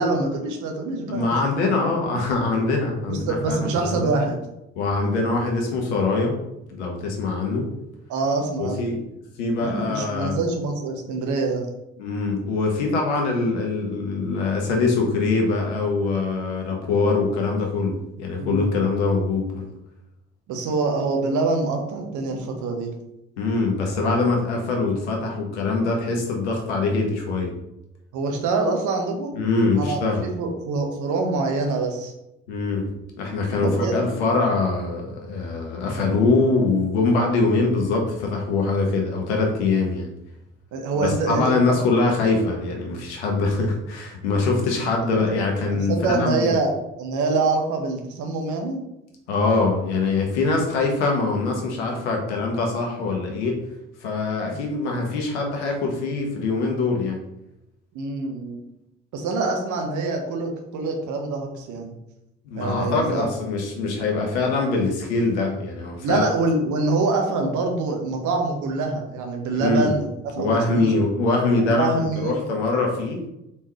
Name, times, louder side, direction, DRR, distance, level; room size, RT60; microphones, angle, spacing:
voice 1, 0.0-1.3 1.6-1.7 3.1-4.4 8.1-8.9 9.6-11.7 18.4-18.7 20.5-22.9 28.1-29.4 29.7-32.1 33.6-33.9 35.8-36.1 40.7-41.6 45.7-46.7 47.0-48.8 54.4-54.5 57.9-58.6 59.1-61.9 62.5-63.3 66.0-70.1 70.4-70.9 71.5-72.4, right 3 dB, 60° right, 3 dB, 1.1 m, -25 dB
voice 2, 1.1-4.1 4.8-6.3 6.7-7.7 8.6-9.1 9.4-10.4 12.0-19.7 23.4-27.5 29.3-30.2 32.5-32.9 33.1-40.1 41.0-46.6 49.3-53.6 54.0-57.2 62.4-66.3 69.5-69.9 70.4-73.2, left 3 dB, 80° left, 1 dB, 1.1 m, -23 dB
4.2 x 3.7 x 3.2 m, 0.86 s
hypercardioid pair, 50°, 34 cm